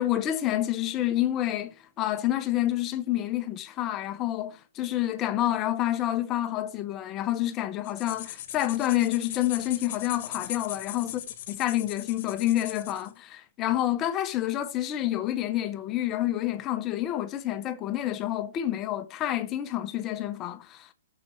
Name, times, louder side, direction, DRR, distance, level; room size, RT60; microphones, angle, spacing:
voice 1, 0.0-11.1 11.5-20.9, left 13 dB, 15° left, 0.7 m, -28 dB
sound 1, 7.8-13.1, left 11 dB, 35° left, 1.2 m, -39 dB
18.0 x 6.6 x 3.0 m
hypercardioid pair, 175°, 0 cm